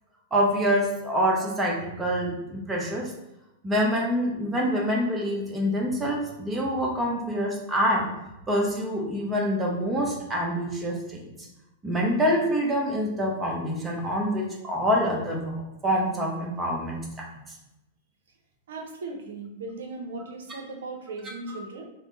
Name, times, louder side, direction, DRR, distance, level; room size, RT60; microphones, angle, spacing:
voice 1, 0.3-3.1 3.6-8.1 8.5-11.3 11.8-17.2 21.5-21.6, equal, 15° right, -2 dB, 0.9 m, -26 dB
voice 2, 18.7-21.9, right 3 dB, 65° right, 2 dB, 0.7 m, -37 dB
3.4 x 2.2 x 3.9 m, 0.92 s
figure-of-eight pair, 95°, 0 cm